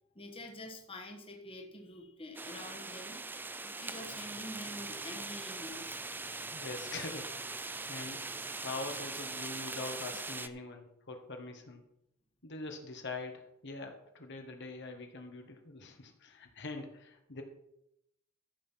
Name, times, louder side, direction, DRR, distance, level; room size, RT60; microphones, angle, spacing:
voice 1, 0.1-3.3 3.6-6.0, left 1 dB, 25° left, 3 dB, 1.5 m, -47 dB
sound 1, 2.3-10.5, right 3 dB, 10° right, 0.4 m, -41 dB
sound 2, 3.9-9.7, right 2 dB, 65° right, 2.3 m, -60 dB
voice 2, 6.5-11.8 12.4-17.4, left 3 dB, 55° left, 4 dB, 1.5 m, -44 dB
14.0 x 6.6 x 5.8 m, 0.80 s
head